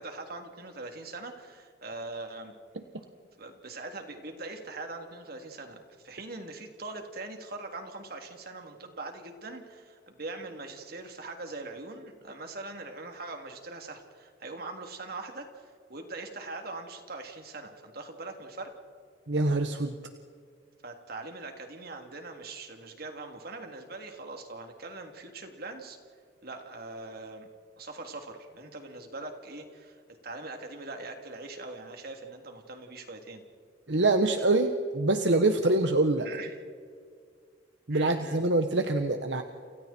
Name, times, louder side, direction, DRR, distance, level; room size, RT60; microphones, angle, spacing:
voice 1, 0.0-2.5 3.4-18.7 20.8-26.0 26.4-27.5 27.8-33.4 36.2-36.6 37.9-38.4, right 2 dB, 60° right, 4 dB, 3.3 m, -42 dB
voice 2, 19.3-20.0 33.9-36.3 37.9-39.4, right 2 dB, 80° right, 6 dB, 1.3 m, -25 dB
29.5 x 29.0 x 4.5 m, 2.1 s
head